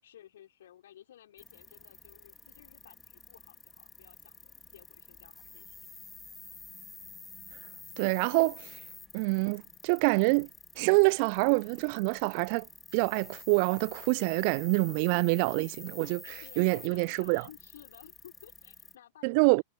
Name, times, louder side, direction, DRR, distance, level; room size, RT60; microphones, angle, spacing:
voice 1, 0.0-5.9 16.2-19.6, left 11 dB, 60° left, 5.1 m, -55 dB
sound 1, 1.4-19.0, left 3 dB, 10° left, 2.5 m, -50 dB
voice 2, 8.0-8.8 9.1-10.5 10.8-12.7 12.9-16.2 16.6-17.4 19.2-19.6, right 36 dB, 45° right, 0.6 m, -26 dB
figure-of-eight pair, 90°, 0 cm